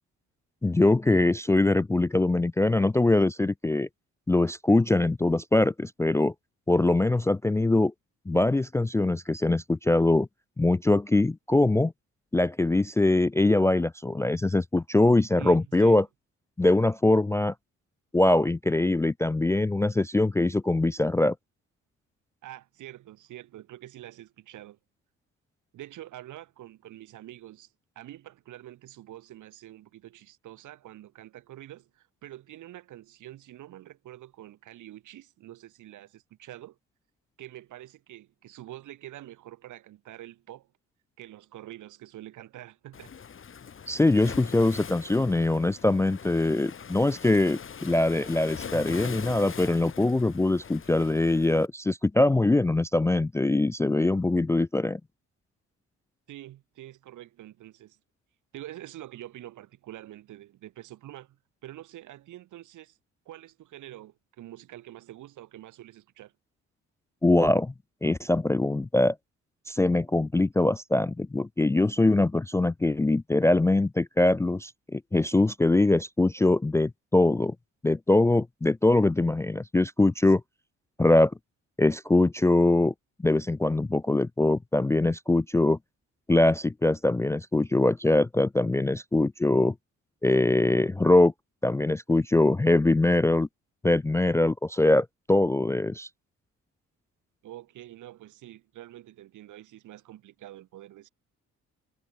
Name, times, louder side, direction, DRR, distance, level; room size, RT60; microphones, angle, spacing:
voice 1, 0.6-3.9 4.3-6.3 6.7-7.9 8.3-10.3 10.6-11.9 12.3-16.0 16.6-17.5 18.1-21.4 43.9-55.0 67.2-67.7 68.0-69.2 69.7-77.5 77.8-80.4 81.0-81.3 81.8-82.9 83.2-85.8 86.3-89.7 90.2-91.3 91.6-93.5 93.8-96.1, left 2 dB, 10° left, 0.3 m, -23 dB
voice 2, 15.4-16.0 22.4-24.8 25.7-36.8 37.4-40.7 41.2-43.2 56.3-58.0 58.5-63.0 63.3-66.3 97.4-101.1, right 14 dB, 80° right, 2.3 m, -46 dB
Waves surf, 42.9-51.7, left 7 dB, 45° left, 2.3 m, -42 dB
cardioid pair, 90°, 30 cm